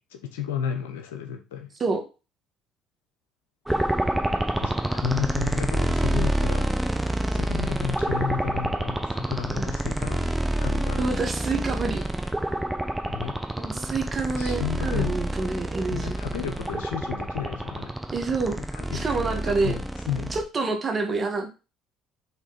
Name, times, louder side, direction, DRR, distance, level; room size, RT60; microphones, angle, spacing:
voice 1, 0.1-1.7 3.7-3.8 4.3-6.7 7.3-11.1 13.1-13.4 14.3-15.1 15.9-17.9 18.7-20.4, left 8 dB, 85° left, 7 dB, 1.0 m, -33 dB
sound 1, 3.7-20.4, right 1 dB, 10° right, 1.1 m, -28 dB
voice 2, 11.0-12.1 13.6-16.2 18.1-18.6 18.9-19.8 20.3-21.5, right 4 dB, 40° right, 4 dB, 1.8 m, -27 dB
6.1 x 3.7 x 4.2 m, 0.30 s
hypercardioid pair, 65°, 0 cm